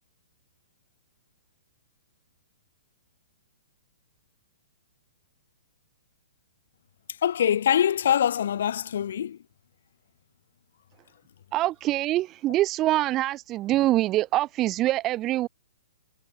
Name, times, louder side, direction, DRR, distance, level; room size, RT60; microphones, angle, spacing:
voice 1, 7.2-9.4, left 9 dB, 60° left, 4.0 m, -23 dB
voice 2, 11.5-15.5, right 15 dB, 30° right, 3.9 m, -24 dB
figure-of-eight pair, 120°, 0 cm